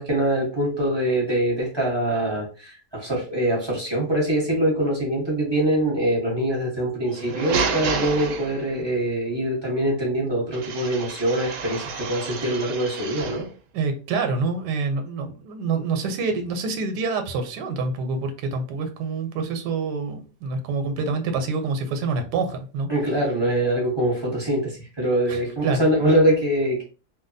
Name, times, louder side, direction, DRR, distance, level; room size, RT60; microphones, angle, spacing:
voice 1, 0.0-13.5 22.9-26.8, right 1 dB, 20° right, -4 dB, 0.8 m, -23 dB
sound 1, 7.0-9.0 10.5-13.5, right 5 dB, 70° right, 0.9 m, -30 dB
voice 2, 13.7-22.9 25.3-25.8, right 4 dB, 90° right, 6 dB, 1.2 m, -27 dB
3.0 x 2.2 x 2.5 m, 0.35 s
omnidirectional pair, 1.8 m